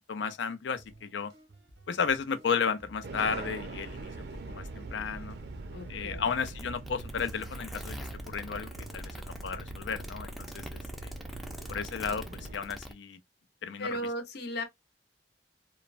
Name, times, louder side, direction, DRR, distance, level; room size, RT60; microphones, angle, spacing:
voice 1, 0.1-1.3 1.9-5.4 5.9-8.0 8.3-11.1 11.7-13.2 13.6-14.0, left 6 dB, 85° left, 0.5 m, -33 dB
sound 1, 0.8-12.7, right 1 dB, 90° right, 0.9 m, -56 dB
sound 2, 3.0-12.5, right 2 dB, 65° right, 0.5 m, -42 dB
voice 2, 5.7-6.3 13.8-14.6, equal, 65° left, 0.8 m, -36 dB
sound 3, 6.5-12.9, equal, ahead, 0.4 m, -44 dB
3.1 x 2.1 x 2.4 m
head